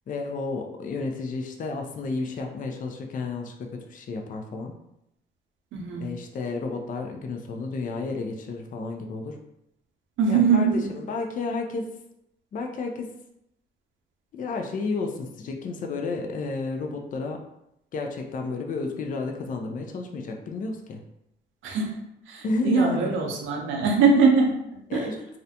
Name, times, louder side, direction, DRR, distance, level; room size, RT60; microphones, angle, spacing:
voice 1, 0.1-4.8 5.9-9.4 10.3-10.7 10.9-11.9 12.5-13.1 14.3-17.4 17.9-21.0 22.4-23.1 24.9-25.2, left 3 dB, 40° left, 3 dB, 0.4 m, -31 dB
voice 2, 5.7-6.1 10.2-10.9 21.6-22.0 22.3-25.1, right 4 dB, 80° right, 1 dB, 0.6 m, -22 dB
2.4 x 2.1 x 2.7 m, 0.81 s
cardioid pair, 90°, 20 cm